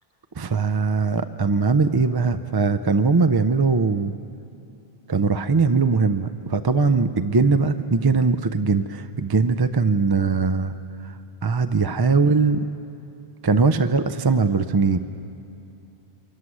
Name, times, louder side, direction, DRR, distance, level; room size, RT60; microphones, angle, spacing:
voice 1, 0.4-4.1 5.1-10.7 11.4-12.6 13.4-15.0, right 4 dB, 35° right, 10 dB, 0.4 m, -20 dB
25.0 x 14.0 x 9.7 m, 2.7 s
omnidirectional pair, 1.0 m